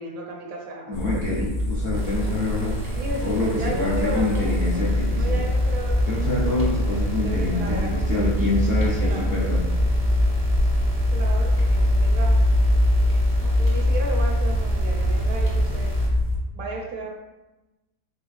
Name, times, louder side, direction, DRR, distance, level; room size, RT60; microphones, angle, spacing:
voice 1, 0.0-1.5 2.9-4.8 5.1-6.2 6.8-8.2 8.8-9.3 11.1-12.4 13.4-16.0 16.5-17.1, right 2 dB, 70° right, -1 dB, 0.9 m, -34 dB
voice 2, 0.9-2.8 3.2-5.5 6.1-9.7, left 2 dB, 85° left, -5 dB, 0.5 m, -26 dB
sound 1, 0.9-16.4, left 1 dB, 50° left, 0.7 m, -23 dB
sound 2, 1.9-16.1, right 1 dB, 45° right, 0.5 m, -34 dB
3.8 x 3.3 x 2.3 m, 1.0 s
omnidirectional pair, 1.8 m